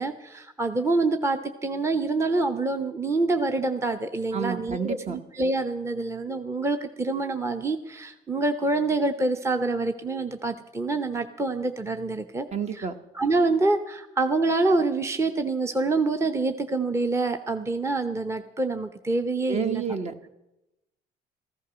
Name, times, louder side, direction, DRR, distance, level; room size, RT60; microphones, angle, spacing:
voice 1, 0.0-12.5 12.7-12.9 13.1-19.8, right 3 dB, 15° right, 7 dB, 0.8 m, -26 dB
voice 2, 4.3-5.2 12.5-13.0 19.5-20.3, right 6 dB, 40° right, 9 dB, 1.2 m, -30 dB
14.5 x 12.5 x 6.2 m, 0.91 s
cardioid pair, 110°, 17 cm